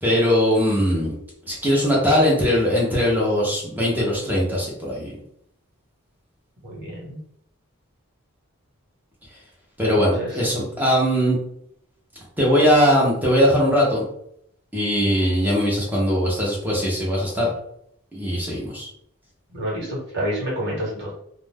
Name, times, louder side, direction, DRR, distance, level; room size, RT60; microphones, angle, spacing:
voice 1, 0.0-1.1 1.5-5.2 9.8-11.4 12.4-14.0 14.7-17.5 18.1-18.9, equal, 10° right, -5 dB, 0.8 m, -20 dB
voice 2, 6.6-7.2 10.0-10.4 19.5-21.1, equal, 50° right, -4 dB, 1.3 m, -28 dB
2.5 x 2.1 x 3.4 m, 0.71 s
head